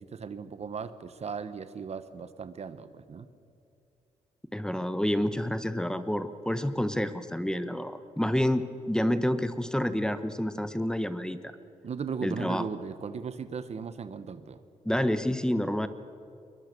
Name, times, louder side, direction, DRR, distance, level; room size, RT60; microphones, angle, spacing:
voice 1, 0.0-3.3 11.8-14.6, right 6 dB, 50° right, 12 dB, 1.2 m, -37 dB
voice 2, 4.5-11.4 12.2-12.6 14.8-15.9, left 1 dB, 5° left, 11 dB, 1.1 m, -28 dB
22.0 x 21.5 x 6.9 m, 2.6 s
cardioid pair, 70°, 14 cm